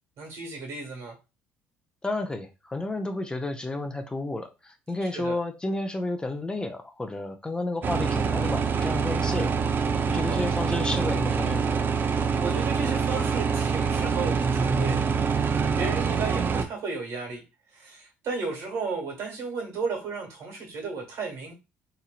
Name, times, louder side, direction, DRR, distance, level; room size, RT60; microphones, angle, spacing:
voice 1, 0.2-1.1 5.1-5.4 10.1-10.4 12.0-15.1 15.8-17.4 17.7-21.5, right 4 dB, 65° right, 1.5 m, -34 dB
voice 2, 2.0-11.7, left 2 dB, 15° left, 0.5 m, -32 dB
sound 1, 7.8-16.6, right 6 dB, 40° right, 0.4 m, -25 dB
3.0 x 2.6 x 2.4 m
supercardioid pair, 75°, 5 cm